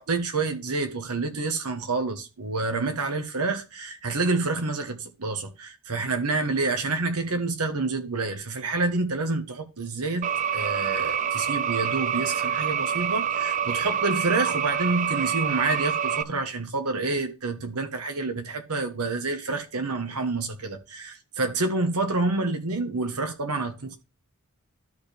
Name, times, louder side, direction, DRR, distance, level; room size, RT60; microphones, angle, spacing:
voice 1, 0.0-24.0, right 3 dB, 85° right, 1.4 m, -28 dB
sound 1, 10.2-16.2, right 8 dB, 35° right, 0.4 m, -27 dB
12.5 x 4.6 x 3.4 m
head